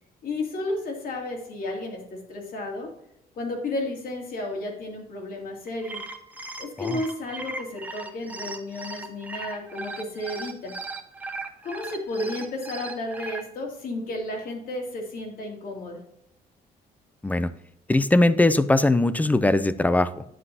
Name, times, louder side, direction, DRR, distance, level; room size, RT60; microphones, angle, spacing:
voice 1, 0.2-2.9 3.4-6.0 6.6-10.8 11.6-16.0, left 2 dB, 65° left, 1 dB, 2.6 m, -32 dB
sound 1, 5.7-13.4, right 3 dB, 10° right, 1.0 m, -37 dB
voice 2, 17.9-20.2, left 2 dB, 10° left, 14 dB, 0.4 m, -20 dB
9.9 x 7.4 x 2.8 m, 0.79 s
cardioid pair, 130°, 16 cm